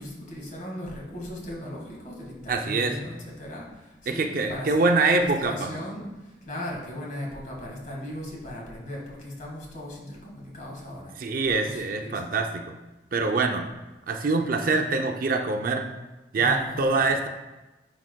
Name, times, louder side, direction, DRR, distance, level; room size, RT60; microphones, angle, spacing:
voice 1, 0.0-11.1 11.4-12.4 16.3-17.1, left 1 dB, 45° left, -3 dB, 1.8 m, -37 dB
voice 2, 2.5-3.0 4.1-5.8 11.2-12.7 13.1-13.7 14.1-15.9 16.3-17.3, right 3 dB, 50° right, 5 dB, 0.5 m, -24 dB
9.6 x 4.8 x 2.2 m, 1.1 s
head